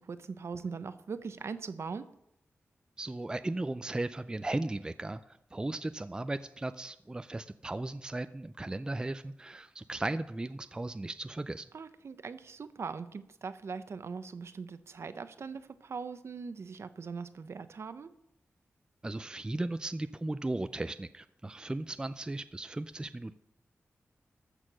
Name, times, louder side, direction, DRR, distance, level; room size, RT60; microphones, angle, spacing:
voice 1, 0.0-2.1 11.7-18.1, right 5 dB, 65° right, 12 dB, 0.8 m, -41 dB
voice 2, 3.0-11.7 19.0-23.4, right 2 dB, 15° right, 12 dB, 0.4 m, -36 dB
14.0 x 6.5 x 6.2 m, 0.78 s
wide cardioid pair, 105°, 5 cm